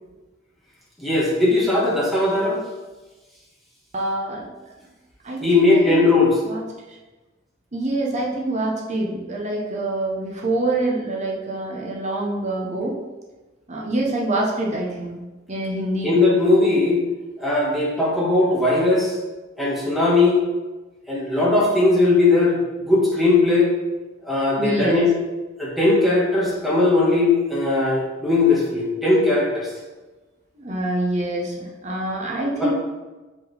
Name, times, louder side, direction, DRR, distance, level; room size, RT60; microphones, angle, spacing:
voice 1, 1.0-2.6 5.4-6.4 16.0-17.0 17.4-19.1 19.6-20.4 21.1-23.7 24.2-25.1 25.6-29.7 32.6-32.7, left 2 dB, ahead, -5 dB, 1.5 m, -19 dB
voice 2, 3.9-4.5 5.2-6.0 6.4-6.6 7.7-13.0 13.7-15.2 15.5-16.1 24.6-25.1 30.6-32.7, right 2 dB, 35° right, -2 dB, 0.9 m, -25 dB
5.9 x 4.7 x 3.4 m, 1.2 s
head